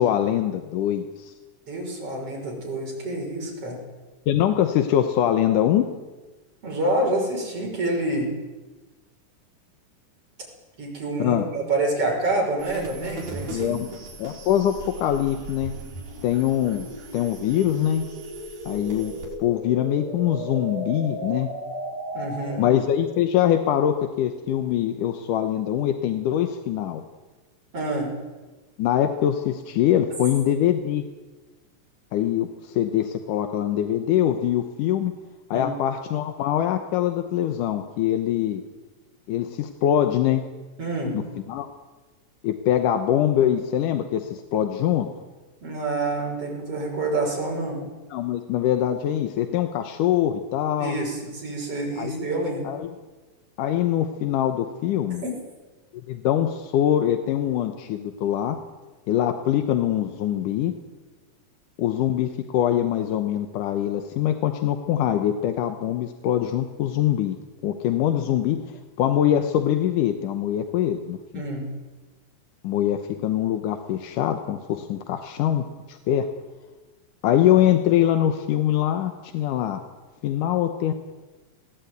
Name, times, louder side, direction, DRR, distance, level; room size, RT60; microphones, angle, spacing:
voice 1, 0.0-1.3 4.3-5.8 11.2-11.5 13.5-13.9 14.2-15.7 16.2-16.9 17.1-18.1 18.7-21.5 22.6-27.0 28.8-31.0 32.1-35.1 35.5-38.6 39.3-40.4 41.1-41.2 41.5-41.7 42.4-45.1 48.1-51.0 52.0-52.3 52.6-52.9 53.6-55.2 56.1-58.6 59.1-60.7 61.8-67.4 67.6-71.4 72.6-76.3 77.2-79.8 80.2-80.9, left 11 dB, 80° left, 7 dB, 2.6 m, -23 dB
voice 2, 1.7-3.8 6.6-8.3 10.8-13.9 22.1-22.7 27.7-28.1 35.5-35.7 40.8-41.2 45.6-47.9 50.8-52.7 55.2-55.3 71.3-71.7, right 2 dB, 45° right, -2 dB, 7.1 m, -27 dB
sound 1, 11.9-22.8, equal, 25° right, 8.4 m, -37 dB
sound 2, 12.6-19.3, right 4 dB, 70° right, 6.2 m, -40 dB
20.5 x 17.0 x 9.4 m, 1.2 s
omnidirectional pair, 3.7 m